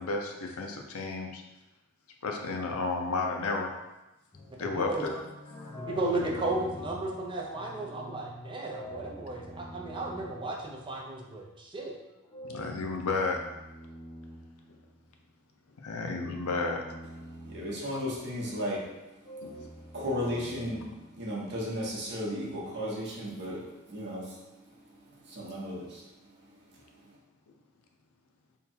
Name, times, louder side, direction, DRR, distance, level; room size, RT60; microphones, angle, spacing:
voice 1, 0.0-1.4 2.2-3.8 4.6-4.9 12.4-13.4 15.8-16.8 19.4-19.5 19.9-20.0 25.5-25.6, left 3 dB, 80° left, 2 dB, 0.6 m, -32 dB
sound 1, 4.3-11.3 12.2-15.3 16.3-18.4 19.2-21.7, equal, 20° left, 0.6 m, -46 dB
voice 2, 4.6-5.0 5.8-11.9, right 2 dB, 25° right, -1 dB, 0.6 m, -34 dB
voice 3, 17.3-18.9 19.9-24.4 25.2-26.4, equal, 55° right, -5 dB, 0.9 m, -35 dB
3.6 x 2.2 x 4.4 m, 0.99 s
head